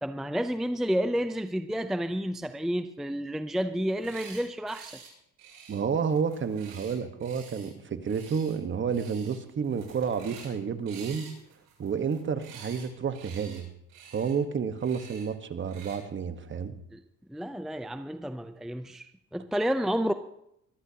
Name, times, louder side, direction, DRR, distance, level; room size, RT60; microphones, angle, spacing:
voice 1, 0.0-5.0 16.9-17.0 17.3-20.1, equal, ahead, 9 dB, 0.5 m, -30 dB
sound 1, 3.8-4.4 4.7-5.1 5.4-7.7 8.0-8.6 8.9-9.4 9.6-10.5 10.9-12.9 13.1-13.6 13.9-14.3 14.8-15.2 15.7-16.0, right 6 dB, 80° right, 7.1 m, -49 dB
voice 2, 5.7-11.3 11.8-13.7 14.1-16.7, right 6 dB, 35° right, 10 dB, 1.3 m, -30 dB
23.0 x 14.5 x 2.8 m, 0.77 s
cardioid pair, 110°, 33 cm